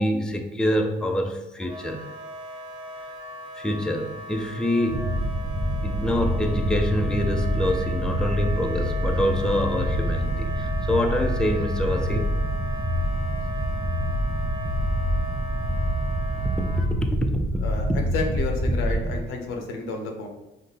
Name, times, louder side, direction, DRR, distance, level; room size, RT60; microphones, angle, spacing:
voice 1, 0.0-2.1 3.6-5.2 5.8-12.4 16.7-17.4, left 1 dB, 5° left, 4 dB, 0.4 m, -26 dB
Wind instrument woodwind instrument, 1.6-16.9, equal, 25° right, 0.9 m, -37 dB
sound 1, 4.9-19.2, equal, 80° right, 0.6 m, -26 dB
voice 2, 17.6-20.3, left 3 dB, 90° left, 3 dB, 0.7 m, -31 dB
5.1 x 2.1 x 3.9 m, 0.97 s
cardioid pair, 90°, 20 cm